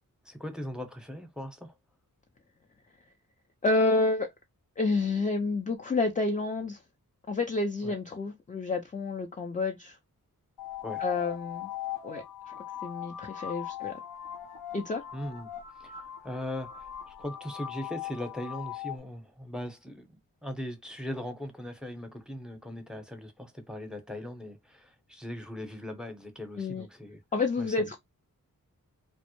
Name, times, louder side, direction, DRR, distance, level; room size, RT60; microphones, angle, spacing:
voice 1, 0.2-1.7 7.8-7.9 10.8-11.1 15.1-15.5 15.8-27.2 27.6-27.9, left 1 dB, ahead, 0.8 m, -39 dB
voice 2, 3.6-4.3 4.8-6.8 7.3-10.0 11.0-11.7 12.0-14.0 14.7-15.0 26.6-26.9 27.3-28.0, left 3 dB, 20° left, 0.4 m, -29 dB
sound 1, 10.6-19.0, left 11 dB, 80° left, 0.8 m, -40 dB
2.1 x 2.0 x 2.9 m
cardioid pair, 40°, 37 cm